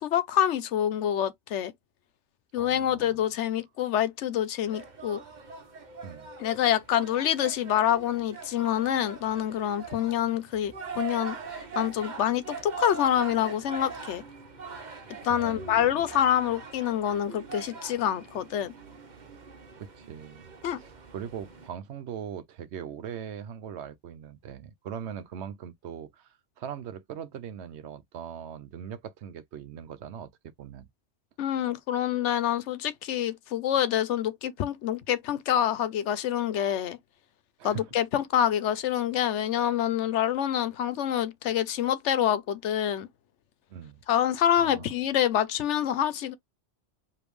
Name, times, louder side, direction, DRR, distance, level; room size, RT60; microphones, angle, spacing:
voice 1, 0.0-1.7 2.5-5.2 6.4-14.2 15.2-18.7 20.6-20.8 31.4-37.0 37.6-43.1 44.1-46.3, left 10 dB, 85° left, 1.0 m, -26 dB
voice 2, 2.6-3.2 6.0-6.3 15.3-16.1 19.8-20.5 20.8-30.3 30.6-30.9 37.6-37.9 43.7-44.0 44.6-44.9, right 8 dB, 75° right, 0.9 m, -40 dB
sound 1, 4.6-21.7, right 5 dB, 40° right, 1.1 m, -42 dB
5.1 x 2.8 x 3.1 m
omnidirectional pair, 1.2 m